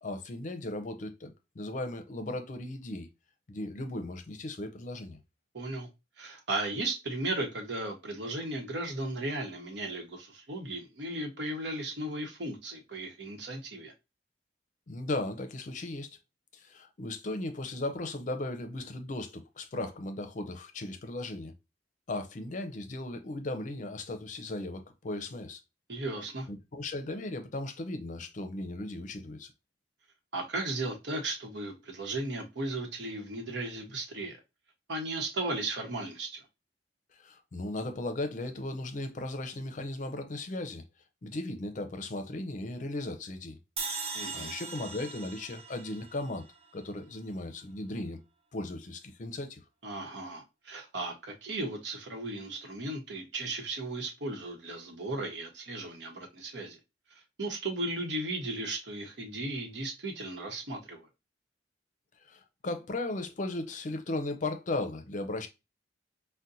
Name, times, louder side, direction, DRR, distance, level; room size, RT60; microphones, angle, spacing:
voice 1, 0.0-3.1 3.5-5.2 14.9-16.2 16.5-21.5 22.1-25.6 26.5-29.5 37.1-40.8 41.2-43.6 44.3-46.5 46.7-48.2 48.5-49.6 62.2-65.5, left 2 dB, 45° left, 0.5 m, -36 dB
voice 2, 5.5-5.9 6.2-13.9 25.9-26.5 30.3-34.4 34.9-36.4 44.1-44.5 49.8-56.8 57.1-61.1, right 2 dB, 85° right, 0.9 m, -36 dB
sound 1, 43.8-47.0, right 4 dB, 35° right, 0.6 m, -40 dB
4.0 x 2.1 x 2.5 m
head